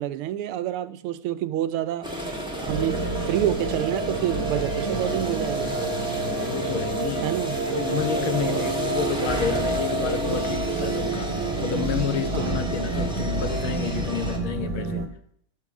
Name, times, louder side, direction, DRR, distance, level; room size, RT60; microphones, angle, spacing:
voice 1, 0.0-2.1 2.6-5.8 7.2-7.6 8.4-8.8 12.3-12.6, right 12 dB, 85° right, 1.6 m, -28 dB
sound 1, 2.0-14.4, equal, ahead, 1.5 m, -31 dB
sound 2, 2.7-15.1, right 4 dB, 40° right, 1.3 m, -29 dB
voice 2, 6.1-7.4 7.7-15.1, left 8 dB, 75° left, 1.8 m, -30 dB
13.0 x 7.4 x 6.1 m
omnidirectional pair, 2.4 m